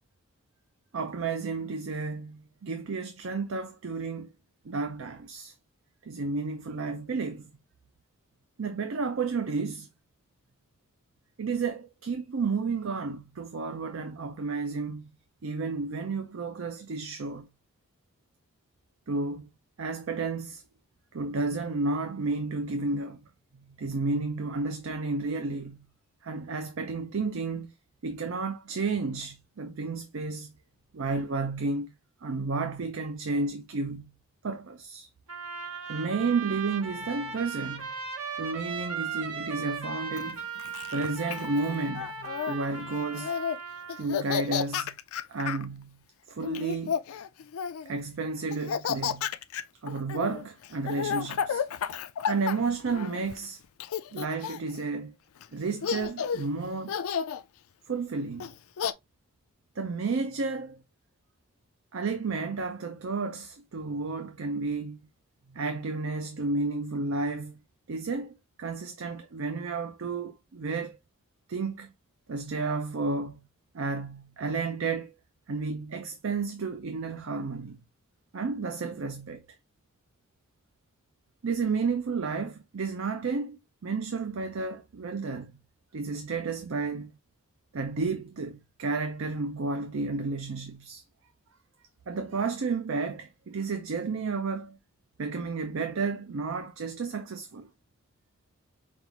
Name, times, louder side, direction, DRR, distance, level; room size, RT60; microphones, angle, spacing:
voice 1, 0.9-4.3 4.6-5.5 6.0-7.5 8.6-9.9 11.4-15.1 15.4-17.5 19.1-19.5 19.8-20.6 21.1-23.2 23.7-25.8 26.2-27.7 28.0-30.6 30.9-31.9 32.2-34.1 34.4-35.1 35.9-37.9 38.4-40.4 40.9-43.3 44.0-45.0 45.3-46.0 46.3-47.0 47.9-49.3 49.8-51.6 52.3-53.6 54.1-55.1 55.5-57.0 57.9-58.5 59.8-60.8 61.9-65.0 65.5-67.6 67.9-71.0 71.5-71.9 72.3-73.4 73.7-75.1 75.5-77.8 78.3-79.4 81.4-85.5 85.9-87.1 87.7-91.0 92.1-94.8 95.2-97.7, right 4 dB, 65° right, 0.5 m, -32 dB
Trumpet, 35.3-44.1, right 5 dB, 85° right, 1.2 m, -37 dB
Laughter, 40.2-42.6 43.1-43.6 43.9-45.7 46.4-47.9 48.5-53.4 53.8-54.8 55.4-55.5 55.8-56.5 56.9-57.4 58.4-58.9, left 7 dB, 75° left, 0.4 m, -32 dB
5.3 x 2.4 x 2.9 m
head